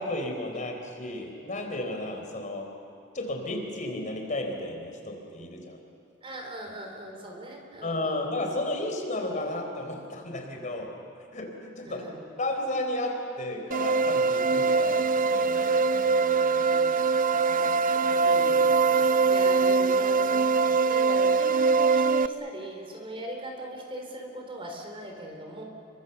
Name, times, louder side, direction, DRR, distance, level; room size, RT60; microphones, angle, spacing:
voice 1, 0.0-2.7 3.1-5.8 7.8-10.9 11.3-12.0 12.4-16.7, left 1 dB, 40° left, 3 dB, 4.0 m, -33 dB
voice 2, 6.2-8.3 11.8-12.3 16.7-17.1 18.2-18.8 19.3-20.6 20.8-25.6, right 1 dB, 30° right, 2 dB, 4.1 m, -40 dB
sound 1, 13.7-22.3, right 4 dB, 45° right, 0.5 m, -23 dB
29.0 x 24.0 x 7.1 m, 2.7 s
head